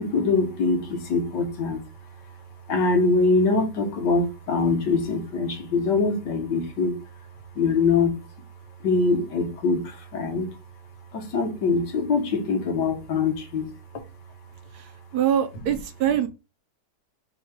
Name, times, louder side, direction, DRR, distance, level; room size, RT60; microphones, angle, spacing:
voice 1, 0.0-14.1 14.4-15.1 15.7-15.8, left 4 dB, 75° left, 1.8 m, -24 dB
voice 2, 14.7-16.3, right 9 dB, 70° right, 1.0 m, -24 dB
4.7 x 2.3 x 4.7 m
omnidirectional pair, 1.9 m